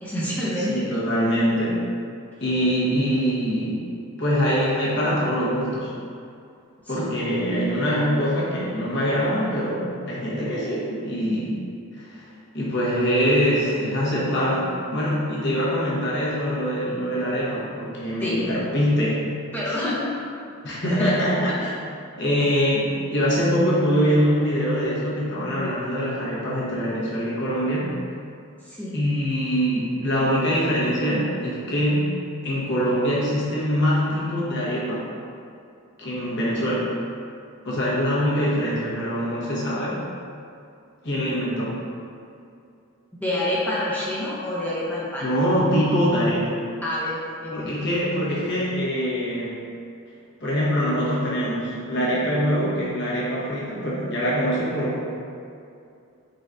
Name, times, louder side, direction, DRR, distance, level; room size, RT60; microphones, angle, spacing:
voice 1, 0.0-0.9 6.8-7.1 18.2-18.4 19.5-20.1 21.0-21.1 28.6-29.0 43.2-45.3 46.8-47.7, left 1 dB, 5° left, -8 dB, 0.5 m, -27 dB
voice 2, 0.6-1.8 2.4-3.9 4.2-5.9 6.9-11.6 12.0-12.2 12.5-19.3 19.7-19.8 20.6-21.7 22.2-27.9 28.9-32.2 32.4-35.1 36.0-36.9 37.6-40.0 41.0-41.8 45.2-46.6 47.5-49.6 50.4-55.1, equal, 55° left, -7 dB, 1.1 m, -23 dB
4.6 x 4.0 x 2.5 m, 2.5 s
head